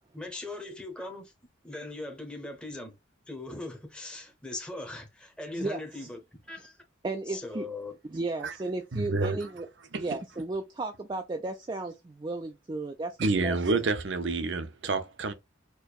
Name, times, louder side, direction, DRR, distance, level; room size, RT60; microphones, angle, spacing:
voice 1, 0.1-1.3 1.6-2.9 3.3-6.2 6.5-6.8 7.3-8.0, left 2 dB, 5° left, 0.8 m, -39 dB
voice 2, 5.5-6.1 7.0-7.7 8.1-9.7 9.9-13.8, right 2 dB, 25° right, 0.4 m, -34 dB
voice 3, 8.9-9.5 9.9-10.2 13.2-15.3, right 3 dB, 60° right, 0.7 m, -29 dB
4.5 x 2.2 x 2.3 m
head